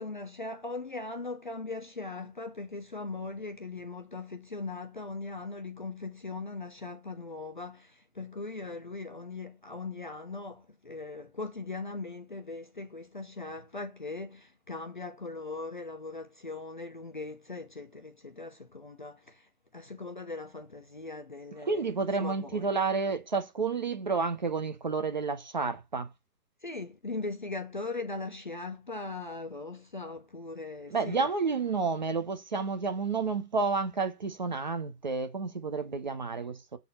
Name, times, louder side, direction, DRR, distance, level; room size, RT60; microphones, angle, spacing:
voice 1, 0.0-21.9 22.2-22.8 26.6-31.3, left 3 dB, 30° left, 0.7 m, -40 dB
voice 2, 21.7-26.1 30.9-36.8, right 4 dB, 30° right, 0.9 m, -30 dB
7.8 x 4.2 x 5.5 m
hypercardioid pair, 170°, 48 cm